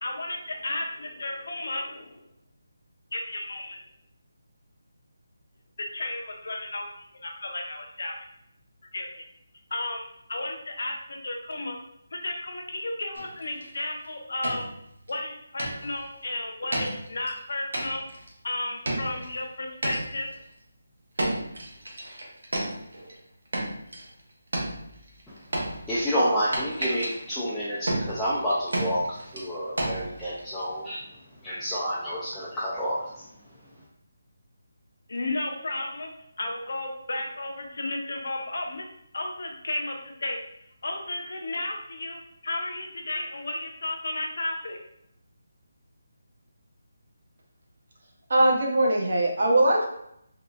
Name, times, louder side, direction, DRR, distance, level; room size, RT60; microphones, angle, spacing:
voice 1, 0.0-2.2 3.1-3.8 5.8-8.2 8.9-9.2 9.7-10.0 10.3-11.8 12.1-14.6 15.1-18.0 18.4-20.3 35.1-36.1 36.4-38.9 39.1-40.4 40.8-44.8, left 2 dB, 60° left, 2 dB, 0.6 m, -33 dB
sound 1, 13.1-13.8 14.1-14.2 14.4-15.1 15.6-16.1 16.7-17.4 17.7-18.3 18.9-19.4 19.8-20.3 21.2-23.2 23.5-24.2 24.5-30.7, right 1 dB, 85° right, 0.8 m, -32 dB
voice 2, 25.9-27.8 28.1-29.0 29.3-31.0 31.4-33.0, equal, 5° left, -13 dB, 0.3 m, -28 dB
voice 3, 48.3-49.9, right 1 dB, 50° right, -1 dB, 0.7 m, -21 dB
3.7 x 2.3 x 2.4 m, 0.74 s
hypercardioid pair, 175°, 0 cm